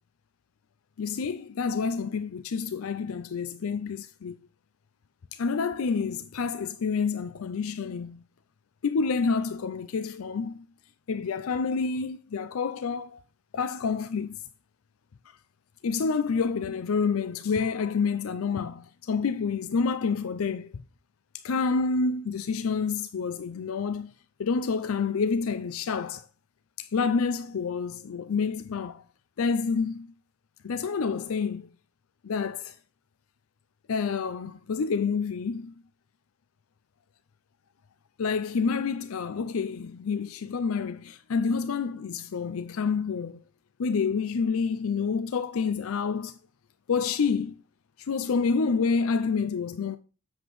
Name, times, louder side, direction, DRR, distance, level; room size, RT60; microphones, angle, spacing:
voice 1, 1.0-4.4 5.3-8.2 8.8-10.6 11.1-13.2 13.5-14.4 15.8-20.7 21.4-24.1 24.4-26.2 26.8-29.0 29.4-30.1 30.6-31.7 32.2-32.8 33.9-35.7 38.2-43.4 43.8-46.4 46.9-47.6 48.0-50.0, left 5 dB, 90° left, 0.5 m, -28 dB
7.9 x 7.1 x 3.1 m
head